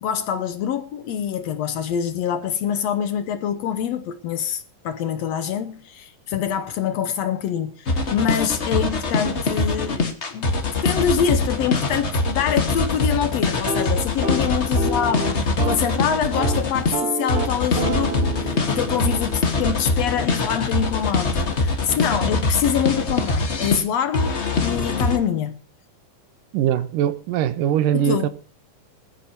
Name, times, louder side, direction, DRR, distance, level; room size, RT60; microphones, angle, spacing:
voice 1, 0.0-10.5 10.8-25.6 27.9-28.3, left 8 dB, 75° left, 1.6 m, -25 dB
sound 1, 7.9-17.0 17.3-23.8 24.1-25.2, left 3 dB, 45° left, 0.8 m, -23 dB
sound 2, 13.5-15.9 16.2-16.6 16.9-20.8, right 2 dB, 45° right, 2.8 m, -29 dB
voice 2, 26.5-28.3, right 10 dB, 85° right, 2.5 m, -21 dB
21.0 x 13.0 x 2.9 m
omnidirectional pair, 3.9 m